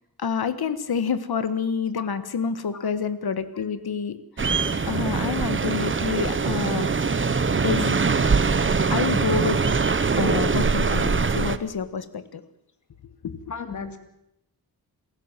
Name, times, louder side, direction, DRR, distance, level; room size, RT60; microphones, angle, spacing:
voice 1, 0.2-4.2 4.5-6.9 7.6-8.0 8.9-9.6 10.2-12.4 13.2-13.4, left 6 dB, 75° left, 13 dB, 1.7 m, -28 dB
sound 1, 4.4-11.6, right 4 dB, 30° right, 1.0 m, -23 dB
voice 2, 13.5-14.0, left 5 dB, 50° left, 8 dB, 2.7 m, -35 dB
28.0 x 16.0 x 7.5 m, 0.81 s
wide cardioid pair, 160°, 38 cm